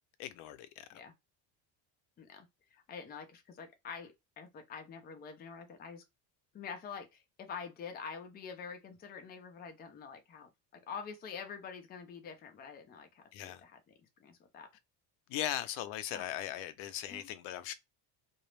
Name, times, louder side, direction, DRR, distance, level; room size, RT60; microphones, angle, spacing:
voice 1, 0.2-0.9 13.3-13.6 15.3-17.7, left 12 dB, 75° left, 0.6 m, -39 dB
voice 2, 2.2-6.0 6.5-13.8 14.2-14.7 16.1-16.3 17.1-17.3, left 6 dB, 20° left, 0.4 m, -46 dB
2.3 x 2.0 x 3.0 m
cardioid pair, 155°, 48 cm